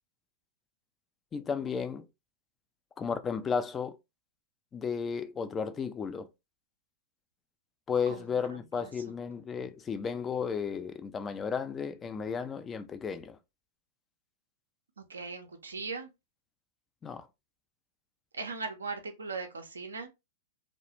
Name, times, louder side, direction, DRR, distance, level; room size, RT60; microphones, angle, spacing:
voice 1, 1.3-2.1 3.0-4.0 4.7-6.3 7.9-13.4 17.0-17.3, left 6 dB, 20° left, 0.4 m, -33 dB
voice 2, 8.1-8.9 15.0-16.1 18.4-20.1, right 4 dB, 85° right, 0.5 m, -39 dB
2.3 x 2.1 x 2.9 m
hypercardioid pair, 105°, 0 cm